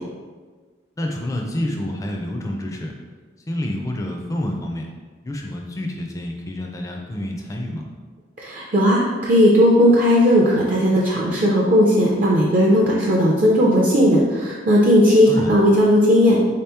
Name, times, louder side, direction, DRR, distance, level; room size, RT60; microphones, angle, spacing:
voice 1, 1.0-2.9 3.5-4.9 5.2-7.8 15.3-15.6, left 1 dB, 20° left, 1 dB, 0.3 m, -28 dB
voice 2, 8.4-16.4, equal, 45° right, -4 dB, 0.4 m, -16 dB
3.7 x 2.9 x 3.4 m, 1.4 s
head